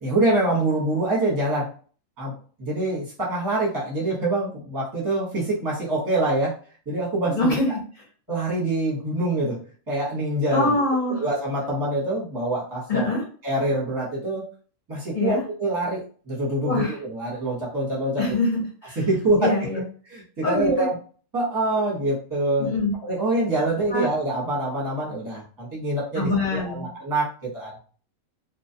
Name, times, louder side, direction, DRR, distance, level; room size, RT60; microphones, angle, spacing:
voice 1, 0.0-1.7 2.2-6.6 6.9-7.5 8.3-9.6 9.9-10.7 11.2-13.1 13.4-14.4 14.9-18.2 19.0-19.5 20.1-20.9 21.3-22.7 23.0-27.8, right 2 dB, 15° right, -5 dB, 0.8 m, -25 dB
voice 2, 7.2-7.7 10.5-11.2 12.9-13.2 15.1-15.4 16.6-17.0 18.2-19.0 19.4-19.9 20.4-20.8 22.6-22.9 23.9-24.1 26.1-26.9, left 2 dB, 40° left, -5 dB, 0.8 m, -24 dB
2.4 x 2.1 x 2.6 m, 0.42 s
omnidirectional pair, 1.4 m